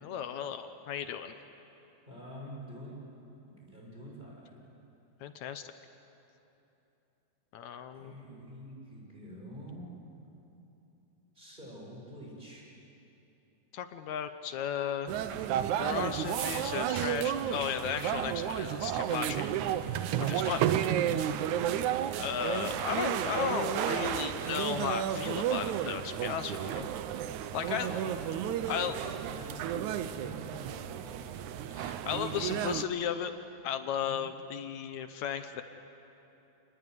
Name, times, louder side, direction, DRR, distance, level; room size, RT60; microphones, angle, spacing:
voice 1, 0.0-1.3 5.2-5.7 7.5-8.1 13.7-15.1 15.8-19.8 20.2-20.6 22.2-26.9 27.5-28.0 28.7-29.0 31.7-33.3 33.6-35.6, left 8 dB, 70° left, 9 dB, 1.8 m, -35 dB
voice 2, 2.1-3.0 3.6-4.6 7.9-9.9 11.3-12.7 16.1-16.5 27.6-31.3 34.0-34.3, equal, 10° right, -3 dB, 7.1 m, -47 dB
sound 1, 15.1-32.8, right 10 dB, 75° right, 1.8 m, -32 dB
29.0 x 20.5 x 9.5 m, 3.0 s
omnidirectional pair, 4.3 m